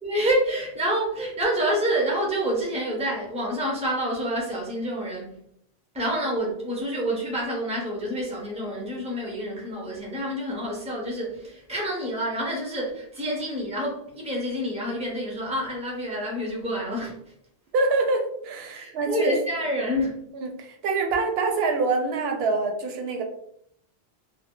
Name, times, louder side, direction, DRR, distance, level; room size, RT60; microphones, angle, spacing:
voice 1, 0.0-5.4 5.9-17.3 18.7-20.2, equal, 5° right, -2 dB, 0.6 m, -28 dB
voice 2, 17.7-19.3 20.3-23.2, right 3 dB, 80° right, 3 dB, 0.8 m, -25 dB
2.2 x 2.1 x 3.6 m, 0.70 s
omnidirectional pair, 1.0 m